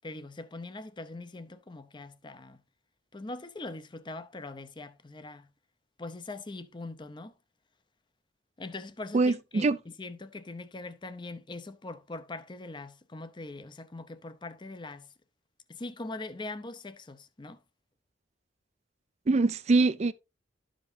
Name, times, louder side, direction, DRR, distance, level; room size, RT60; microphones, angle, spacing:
voice 1, 0.0-2.6 3.1-5.5 6.0-7.3 8.6-9.7 10.0-15.1 15.7-17.6, left 2 dB, 25° left, 0.6 m, -42 dB
voice 2, 9.1-9.8 19.3-20.1, right 3 dB, 35° right, 0.4 m, -24 dB
12.0 x 5.1 x 2.7 m
head